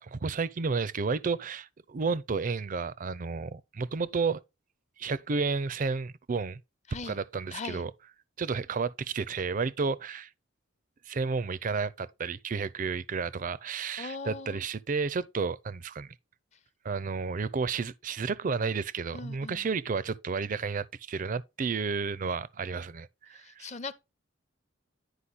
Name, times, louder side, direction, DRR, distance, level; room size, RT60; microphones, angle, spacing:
voice 1, 0.0-4.4 5.0-6.6 7.0-7.9 8.4-10.3 11.1-16.1 16.8-23.7, right 4 dB, 40° right, 0.4 m, -32 dB
voice 2, 6.9-7.2 7.5-7.8 14.0-14.6 19.1-19.6 23.3-23.9, left 4 dB, 35° left, 0.7 m, -40 dB
10.0 x 5.0 x 4.0 m
head